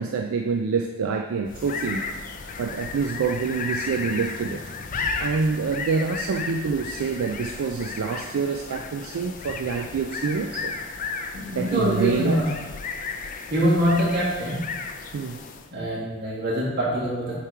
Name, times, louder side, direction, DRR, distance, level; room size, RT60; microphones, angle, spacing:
voice 1, 0.0-2.1 2.6-4.6 5.2-10.7 11.5-12.4 15.1-15.4, right 5 dB, 70° right, 4 dB, 0.3 m, -26 dB
sound 1, 1.5-15.8, left 4 dB, 35° left, 0.3 m, -34 dB
voice 2, 11.3-12.5 13.5-14.6 15.7-17.4, equal, 45° right, -6 dB, 1.8 m, -24 dB
6.7 x 3.1 x 4.6 m, 1.3 s
head